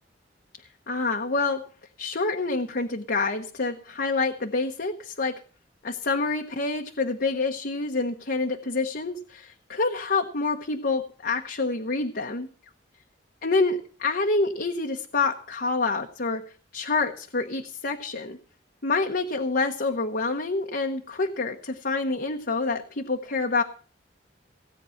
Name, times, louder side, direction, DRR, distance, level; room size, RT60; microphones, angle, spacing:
voice 1, 0.9-1.6 2.0-5.4 5.8-12.5 13.4-16.4 16.7-18.4 18.8-23.6, left 3 dB, 55° left, 2 dB, 1.2 m, -27 dB
17.0 x 9.2 x 5.8 m, 0.41 s
head